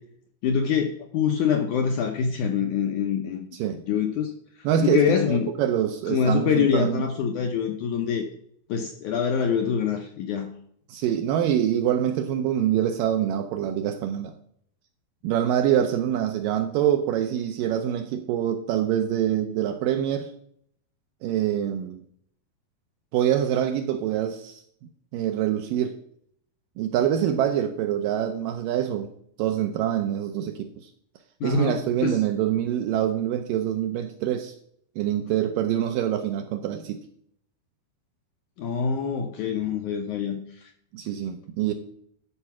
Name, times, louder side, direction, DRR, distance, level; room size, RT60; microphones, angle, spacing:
voice 1, 0.4-3.5 3.9-4.3 4.8-5.5 6.1-8.2 8.7-10.5 31.4-31.8 32.0-32.2 38.6-40.7, left 7 dB, 75° left, 3 dB, 1.9 m, -25 dB
voice 2, 4.6-7.0 10.9-14.3 15.2-20.3 21.2-22.0 23.1-24.6 25.1-26.0 26.8-29.1 29.4-30.9 31.4-34.5 35.0-37.0 40.9-41.7, right 10 dB, 75° right, 7 dB, 2.1 m, -25 dB
13.0 x 4.7 x 6.0 m, 0.66 s
omnidirectional pair, 4.5 m